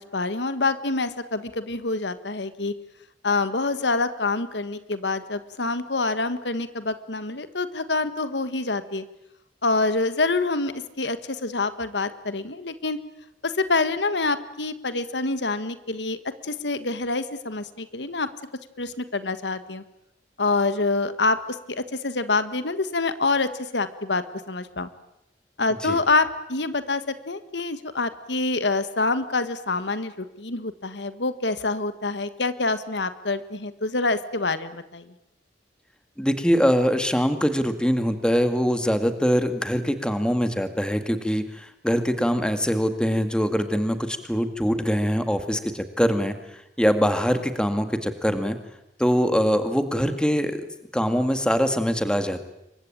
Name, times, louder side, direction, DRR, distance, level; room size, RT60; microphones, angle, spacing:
voice 1, 0.0-2.7 3.2-9.0 9.6-13.0 13.4-18.3 18.8-19.8 20.4-24.9 25.6-35.1, left 3 dB, 80° left, 12 dB, 1.6 m, -26 dB
voice 2, 36.2-48.6 49.0-50.7 50.9-52.4, equal, 5° left, 8 dB, 2.0 m, -23 dB
28.0 x 23.5 x 8.8 m, 0.85 s
head